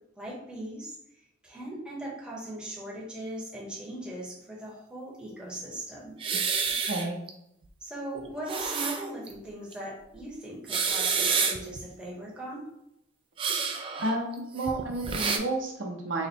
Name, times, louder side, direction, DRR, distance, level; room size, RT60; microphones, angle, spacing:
voice 1, 0.1-0.9 1.4-6.1 7.8-12.6, right 1 dB, 5° right, -5 dB, 0.9 m, -39 dB
sound 1, 6.2-7.3 7.7-7.8 8.3-9.3 9.7-9.8 10.6-11.8 13.4-15.4, right 5 dB, 25° right, 0.3 m, -29 dB
voice 2, 14.0-16.3, right 2 dB, 80° right, 0 dB, 0.8 m, -31 dB
4.0 x 2.1 x 4.3 m, 0.80 s
head